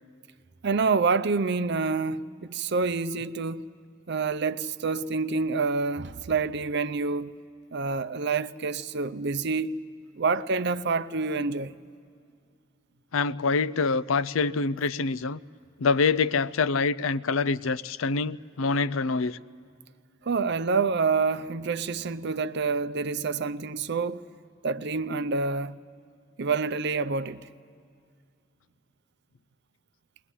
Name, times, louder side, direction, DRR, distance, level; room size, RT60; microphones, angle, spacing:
voice 1, 0.6-3.7 4.1-7.3 7.7-9.7 10.2-11.7 20.2-24.3 24.6-25.8 26.4-27.4, right 4 dB, 60° right, 0.6 m, -27 dB
voice 2, 13.1-15.4 15.8-19.4, left 4 dB, 90° left, 0.5 m, -25 dB
21.5 x 20.0 x 9.9 m
head